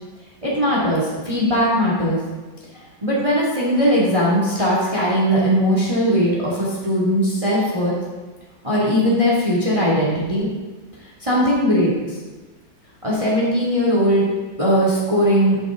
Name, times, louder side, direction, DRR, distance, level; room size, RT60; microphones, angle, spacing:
voice 1, 0.4-2.2 3.0-7.9 8.6-10.5 11.2-12.2 13.0-14.3 14.6-15.6, equal, 15° right, -5 dB, 2.0 m, -19 dB
13.0 x 7.1 x 3.6 m, 1.2 s
omnidirectional pair, 2.2 m